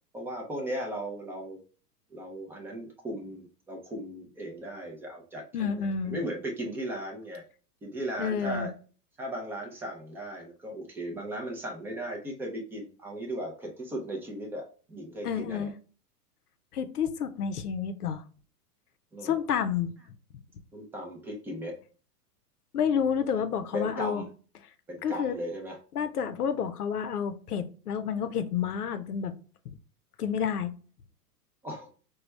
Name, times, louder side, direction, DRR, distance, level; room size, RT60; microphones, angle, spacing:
voice 1, 0.1-1.6 2.1-7.4 7.8-8.7 9.2-15.7 19.1-19.4 20.7-21.8 23.7-24.3 24.9-25.8 31.6-31.9, right 1 dB, 5° right, 0 dB, 0.4 m, -37 dB
voice 2, 5.5-6.2 8.2-8.7 15.2-15.7 16.7-18.2 19.2-19.9 22.7-24.2 25.0-25.4 25.9-29.3 29.7-29.8 30.2-30.7, left 7 dB, 70° left, 10 dB, 0.7 m, -29 dB
4.9 x 2.3 x 3.2 m, 0.39 s
figure-of-eight pair, 100°, 47 cm